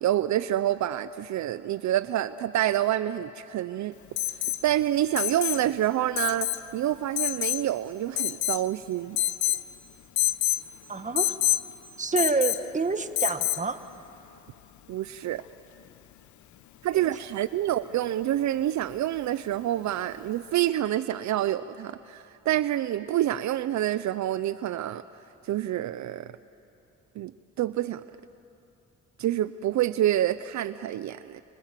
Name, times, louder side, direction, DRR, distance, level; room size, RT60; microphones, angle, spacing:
voice 1, 0.0-3.9 4.6-9.2 14.9-15.4 16.8-25.0 25.4-26.3 27.2-27.3 27.6-28.0 29.2-31.4, right 12 dB, 70° right, 14 dB, 0.7 m, -27 dB
Alarm, 4.2-4.6 5.2-5.6 6.2-6.6 7.2-7.6 8.2-8.7 9.2-9.6 10.2-10.6 11.2-11.6 12.2-12.7 13.2-13.7 15.4-15.5, left 15 dB, 70° left, 0.9 m, -27 dB
voice 2, 10.9-11.3 12.0-13.8, right 4 dB, 25° right, 8 dB, 1.6 m, -27 dB
29.5 x 25.5 x 7.6 m, 2.8 s
cardioid pair, 90°, 30 cm